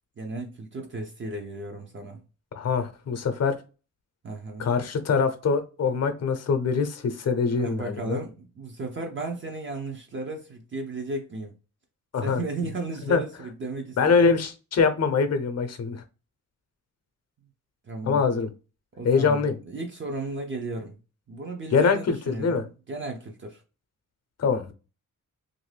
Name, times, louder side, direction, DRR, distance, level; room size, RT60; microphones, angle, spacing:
voice 1, 0.2-2.2 4.2-4.7 7.5-11.5 12.2-14.0 17.8-18.2 19.0-21.0 21.3-23.6, right 2 dB, 40° right, 0.6 m, -34 dB
voice 2, 2.5-3.6 4.6-8.2 12.1-12.4 13.1-13.2 14.0-16.0 18.1-18.5 19.0-19.6 21.7-22.6 24.4-24.7, left 5 dB, 55° left, 0.7 m, -23 dB
2.9 x 2.6 x 3.2 m
wide cardioid pair, 145°, 31 cm